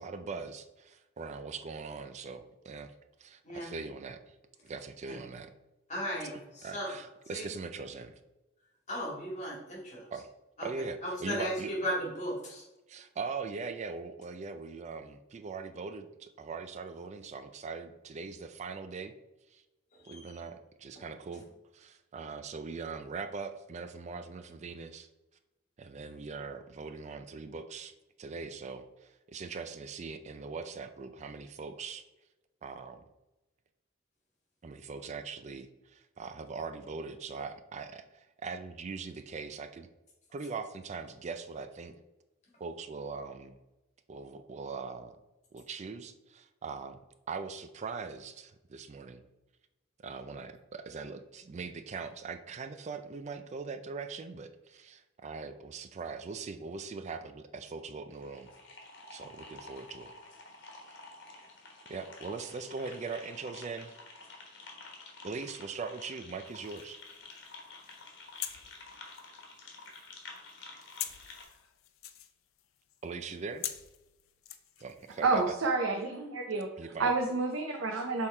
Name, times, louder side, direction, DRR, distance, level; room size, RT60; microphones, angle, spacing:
voice 1, 0.0-4.4 4.6-5.5 6.2-8.2 10.1-10.3 10.6-11.7 12.9-19.1 19.5-19.6 20.0-21.5 21.7-25.1 25.8-32.1 32.6-33.0 34.6-39.9 40.3-42.0 42.6-43.6 44.1-45.2 45.5-47.0 47.3-49.2 50.0-58.5 59.1-60.1 61.9-64.0 64.4-64.5 65.2-67.0 73.0-73.7 74.8-75.4 76.8-77.1, right 4 dB, 35° right, 9 dB, 0.4 m, -41 dB
voice 2, 5.9-6.9 7.3-7.5 8.9-10.1 10.6-10.7 11.0-12.6 19.9-20.4, equal, 35° left, -3 dB, 2.1 m, -36 dB
sound 1, 58.1-71.4, left 3 dB, 60° left, 1.4 m, -50 dB
sound 2, 66.5-75.5, left 11 dB, 85° left, 0.5 m, -46 dB
voice 3, 75.2-76.7 77.0-78.3, right 3 dB, 80° right, 2 dB, 0.7 m, -29 dB
6.3 x 3.7 x 4.3 m, 1.0 s
head